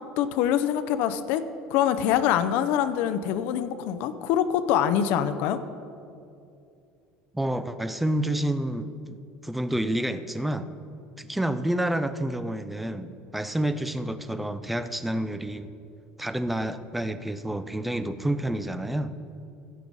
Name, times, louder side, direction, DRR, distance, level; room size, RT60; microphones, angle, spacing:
voice 1, 0.2-1.4 1.7-5.6, left 10 dB, 60° left, 10 dB, 0.6 m, -24 dB
voice 2, 7.3-9.2 9.4-10.7 11.2-15.7 16.2-19.1, right 1 dB, 5° right, 12 dB, 0.4 m, -29 dB
15.5 x 6.2 x 5.4 m, 2.6 s
cardioid pair, 165°, 4 cm